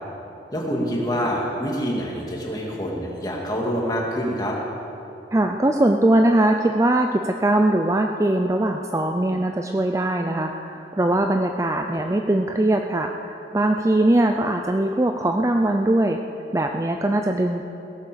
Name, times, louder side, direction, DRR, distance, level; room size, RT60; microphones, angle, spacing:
voice 1, 0.5-4.6, equal, 20° left, -2 dB, 2.2 m, -26 dB
voice 2, 5.3-16.2 16.5-17.6, right 1 dB, 15° right, 4 dB, 0.4 m, -21 dB
17.0 x 8.4 x 6.8 m, 2.8 s
head